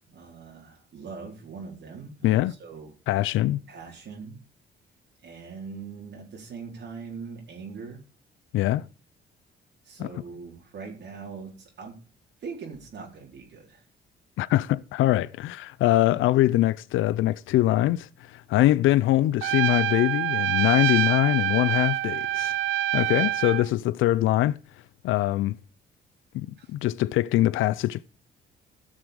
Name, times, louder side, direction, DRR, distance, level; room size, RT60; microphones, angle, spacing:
voice 1, 0.1-2.9 3.7-4.4 5.2-8.0 9.8-11.9 12.4-13.8 26.6-26.7, right 5 dB, 65° right, 4.0 m, -41 dB
voice 2, 2.2-2.5 3.1-3.6 8.5-8.8 10.0-10.1 14.4-22.6 22.9-24.6 25.0-25.6 26.3-28.0, left 15 dB, 85° left, 0.5 m, -23 dB
Trumpet, 19.4-23.7, right 14 dB, 80° right, 0.5 m, -26 dB
16.0 x 6.4 x 5.1 m
cardioid pair, 90°, 20 cm